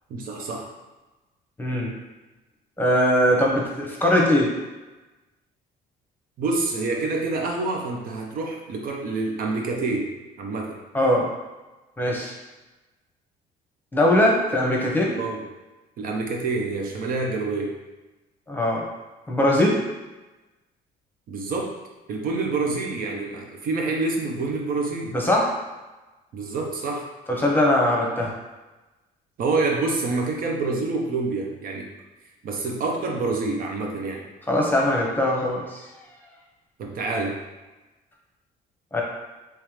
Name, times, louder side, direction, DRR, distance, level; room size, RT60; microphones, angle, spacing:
voice 1, 0.1-0.7 6.4-10.1 10.4-10.8 15.2-15.4 16.0-17.7 21.3-21.7 22.1-25.2 26.3-27.0 29.4-31.9 32.4-34.2 36.8-37.4, right 3 dB, 55° right, 1 dB, 0.7 m, -27 dB
voice 2, 1.6-1.9 2.8-4.5 10.9-11.3 12.0-12.3 13.9-15.2 18.5-18.8 19.3-19.8 25.1-25.5 27.3-28.3 34.5-35.8 38.9-39.0, left 1 dB, 10° left, -2 dB, 0.8 m, -21 dB
3.6 x 3.1 x 3.1 m, 1.1 s
cardioid pair, 110°, 17 cm